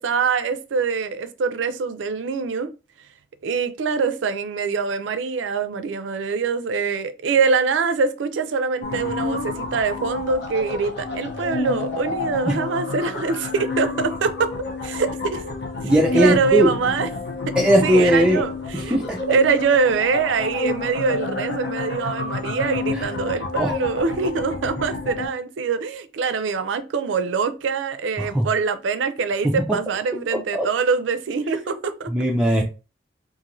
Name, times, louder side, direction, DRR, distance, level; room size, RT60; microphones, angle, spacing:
voice 1, 0.0-2.7 3.4-14.5 14.8-15.4 15.8-17.1 17.5-19.0 19.3-32.1, right 5 dB, 70° right, 0.4 m, -24 dB
sound 1, 8.8-25.3, left 3 dB, 60° left, 0.6 m, -29 dB
voice 2, 15.8-16.7 17.6-18.4 18.7-19.2 23.0-23.1 23.6-23.7 28.2-28.5 30.5-30.7 32.1-32.6, equal, 5° right, 0.3 m, -18 dB
3.0 x 2.5 x 2.6 m
head